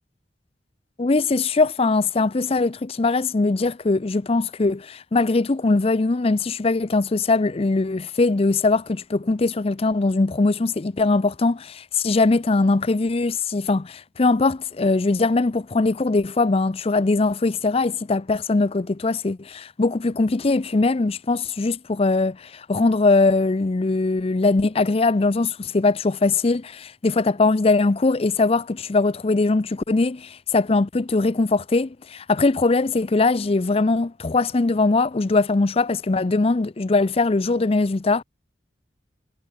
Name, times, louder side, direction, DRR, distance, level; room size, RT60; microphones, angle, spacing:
voice 1, 1.0-38.2, left 3 dB, 35° left, 0.5 m, -21 dB
head